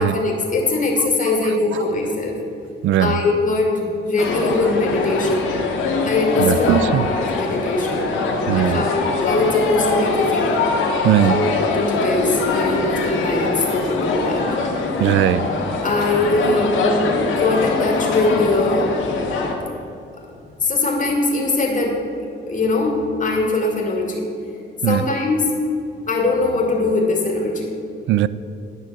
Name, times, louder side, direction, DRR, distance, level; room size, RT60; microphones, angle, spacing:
voice 1, 0.0-2.4 3.0-5.5 6.0-6.7 7.0-8.1 8.5-10.6 11.2-14.5 15.8-16.7 17.2-19.0 20.6-24.2 24.8-25.5 26.1-27.7, left 2 dB, 40° left, 0 dB, 2.5 m, -21 dB
voice 2, 2.8-3.2 6.4-7.1 8.5-8.8 11.0-11.4 15.0-15.5 24.8-25.0 28.1-28.3, right 12 dB, 75° right, 17 dB, 0.4 m, -18 dB
sound 1, 4.2-19.5, left 3 dB, 85° left, 1.7 m, -22 dB
10.0 x 6.1 x 7.0 m, 2.6 s
cardioid pair, 90°, 20 cm